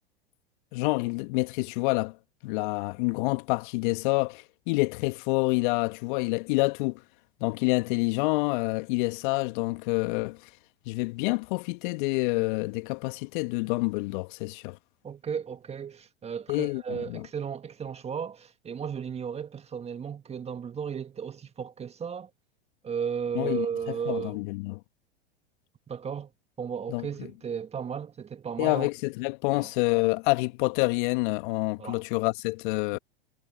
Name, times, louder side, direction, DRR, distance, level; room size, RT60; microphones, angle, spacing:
voice 1, 0.7-2.2 2.4-7.0 7.4-10.4 10.9-14.8 16.5-17.3 23.4-24.8 26.9-27.3 28.6-33.0, left 27 dB, 55° left, 2.2 m, -28 dB
voice 2, 15.0-22.3 22.8-24.4 25.9-26.3 26.6-28.9 29.5-29.7 31.8-32.0, right 7 dB, 20° right, 1.9 m, -34 dB
hypercardioid pair, 95°, 31 cm